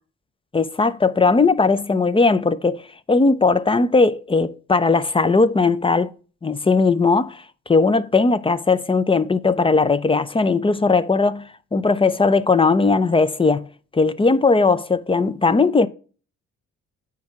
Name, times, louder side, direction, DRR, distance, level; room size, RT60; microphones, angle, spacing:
voice 1, 0.5-2.8 3.1-6.1 6.4-13.7 13.9-15.9, left 4 dB, 20° left, 0.6 m, -18 dB
9.3 x 3.6 x 5.8 m
cardioid pair, 90°, 30 cm